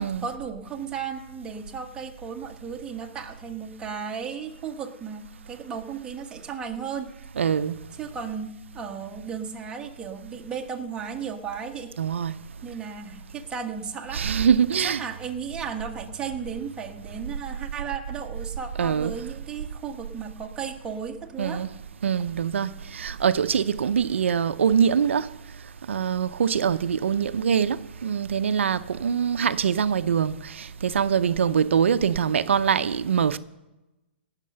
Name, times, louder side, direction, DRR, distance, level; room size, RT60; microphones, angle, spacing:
voice 1, 0.0-7.1 8.0-11.9 12.6-14.2 14.8-21.6, right 6 dB, 10° right, 1.2 m, -35 dB
voice 2, 7.4-7.8 12.0-12.3 14.1-15.0 18.8-19.1 21.4-21.7 22.0-25.3 25.9-33.4, right 7 dB, 85° right, 0.6 m, -23 dB
18.0 x 6.5 x 6.6 m
hypercardioid pair, 150°, 6 cm